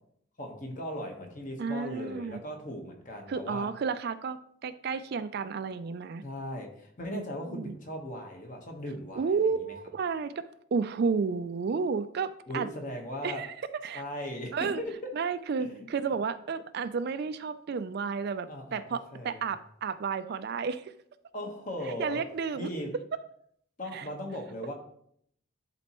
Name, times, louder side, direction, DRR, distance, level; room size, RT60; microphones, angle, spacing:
voice 1, 0.4-3.7 6.2-9.4 12.5-13.4 13.9-14.9 15.6-15.9 18.5-18.8 19.1-19.5 21.3-22.2 22.6-22.9 23.8-24.7, left 1 dB, 40° left, 2 dB, 1.2 m, -38 dB
voice 2, 1.6-2.4 3.3-6.2 7.1-7.7 9.1-10.4 10.7-12.7 13.2-14.0 14.5-14.8 15.1-20.9 21.8-22.7 23.9-24.1, right 5 dB, 50° right, 13 dB, 0.3 m, -32 dB
10.5 x 4.2 x 3.0 m, 0.67 s
head